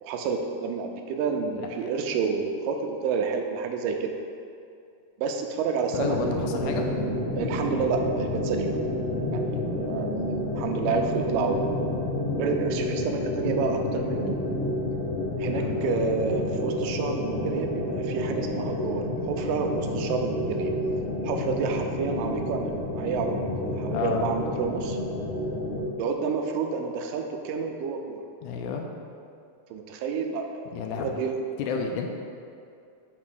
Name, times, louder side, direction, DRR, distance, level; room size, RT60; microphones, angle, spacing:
voice 1, 0.0-4.1 5.2-6.4 7.4-8.8 9.3-11.8 12.4-14.3 15.4-20.7 21.2-25.0 26.0-28.2 29.7-31.3, right 5 dB, 85° right, 3 dB, 2.2 m, -29 dB
voice 2, 1.6-1.9 5.9-6.8 11.3-11.6 15.6-15.9 23.9-24.3 28.4-28.9 30.7-31.2 31.6-32.1, left 6 dB, 80° left, 3 dB, 1.9 m, -31 dB
sound 1, 5.9-25.8, left 1 dB, 55° left, 2.3 m, -29 dB
5.5 x 4.1 x 6.1 m, 2.4 s
omnidirectional pair, 3.8 m